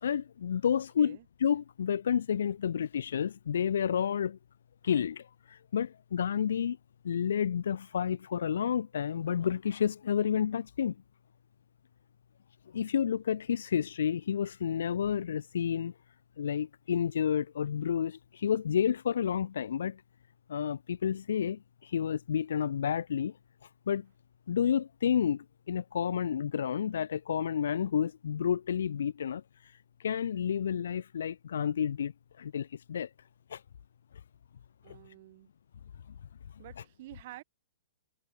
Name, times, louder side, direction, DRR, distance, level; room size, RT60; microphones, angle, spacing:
voice 1, 0.0-4.4 4.8-6.8 7.0-10.9 12.7-15.9 16.4-20.0 20.5-23.3 23.9-24.1 24.5-29.4 30.0-32.1 32.4-33.1 33.5-33.6, left 8 dB, 80° left, 1.1 m, -30 dB
voice 2, 34.8-35.5 36.6-37.4, right 17 dB, 50° right, 4.3 m, -49 dB
hypercardioid pair, 145°, 0 cm